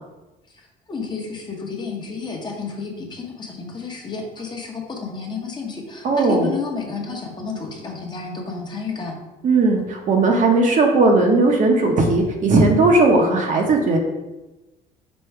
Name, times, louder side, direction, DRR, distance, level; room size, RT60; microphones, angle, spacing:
voice 1, 0.9-9.2, left 4 dB, 25° left, 0 dB, 0.9 m, -31 dB
voice 2, 6.0-6.5 9.4-14.0, right 3 dB, 50° right, 2 dB, 0.8 m, -17 dB
5.3 x 2.2 x 4.5 m, 1.1 s
cardioid pair, 110°, 17 cm